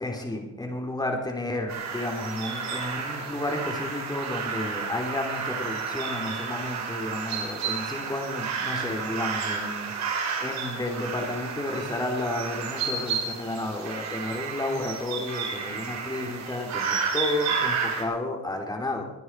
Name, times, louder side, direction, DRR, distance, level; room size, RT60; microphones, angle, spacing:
voice 1, 0.0-19.0, left 2 dB, 15° left, 2 dB, 3.3 m, -32 dB
sound 1, 1.7-18.0, right 5 dB, 65° right, 4.0 m, -31 dB
23.0 x 9.4 x 4.7 m, 1.0 s
cardioid pair, 115°, 29 cm